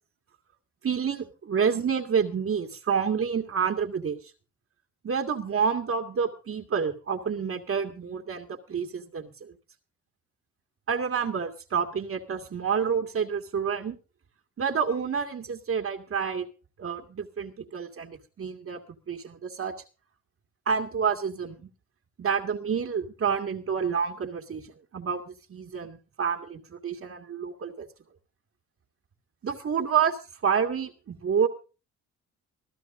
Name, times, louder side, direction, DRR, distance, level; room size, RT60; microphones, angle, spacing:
voice 1, 0.8-4.2 5.0-9.5 10.9-14.0 14.6-16.4 16.8-18.8 19.1-19.7 20.7-21.7 22.2-27.9 29.4-31.5, right 6 dB, 45° right, 2 dB, 2.1 m, -29 dB
24.5 x 13.5 x 2.6 m, 0.34 s
cardioid pair, 90°, 30 cm